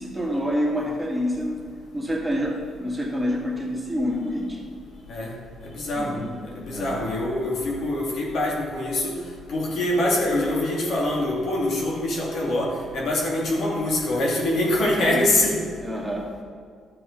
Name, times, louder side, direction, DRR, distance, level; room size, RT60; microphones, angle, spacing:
voice 1, 0.0-1.6 1.9-4.6 6.0-6.4 6.7-7.0 14.8-15.2 15.8-16.3, equal, 5° right, -3 dB, 2.2 m, -27 dB
voice 2, 5.6-6.2 6.6-9.1 9.5-15.6, left 1 dB, 70° left, -3 dB, 2.4 m, -24 dB
12.0 x 7.7 x 4.0 m, 2.1 s
cardioid pair, 90°, 0 cm